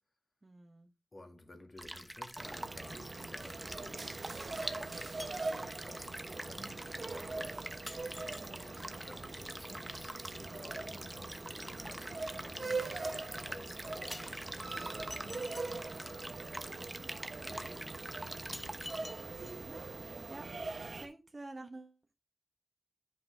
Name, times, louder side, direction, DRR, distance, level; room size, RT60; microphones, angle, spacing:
voice 1, 0.4-0.9 5.3-5.5 6.8-7.2 8.4-8.6 14.6-15.0 17.4-17.9 19.7-19.9 20.3-20.5 20.9-22.1, right 2 dB, 40° right, 1.1 m, -51 dB
voice 2, 1.1-8.0 8.6-16.6 17.4-18.8, left 1 dB, 40° left, 2.2 m, -54 dB
sound 1, 1.8-19.0, equal, 5° right, 1.0 m, -45 dB
sound 2, 2.4-21.1, right 3 dB, 60° right, 1.2 m, -42 dB
sound 3, 4.6-4.9 5.2-5.6 6.6-6.7 7.9-8.8 11.3-12.2 14.1-15.9 17.0-17.1 17.7-17.8 18.5-19.8 20.1-20.2, left 1 dB, 20° left, 0.6 m, -50 dB
10.0 x 5.4 x 3.4 m
wide cardioid pair, 60°, 0 cm